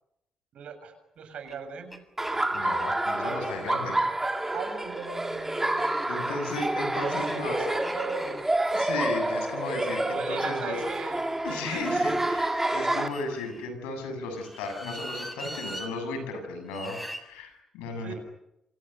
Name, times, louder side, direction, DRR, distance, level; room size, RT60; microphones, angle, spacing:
voice 1, 0.5-2.0 4.5-6.1 6.9-8.4 9.7-11.4 11.7-12.0 13.1-13.2 18.0-18.1, right 6 dB, 65° right, 8 dB, 7.2 m, -38 dB
sound 1, 1.5-1.6 1.9-2.0 2.2-3.2 4.1-10.2 11.4-13.7 14.3-15.9 16.7-17.2, equal, ahead, 7.4 m, -42 dB
Laughter, 2.2-13.1, right 2 dB, 20° right, 3.8 m, -29 dB
voice 2, 2.5-4.0 6.1-7.6 8.7-10.8 11.4-18.1, left 3 dB, 85° left, 7 dB, 7.3 m, -35 dB
28.0 x 26.5 x 6.8 m, 0.83 s
hypercardioid pair, 45°, 2 cm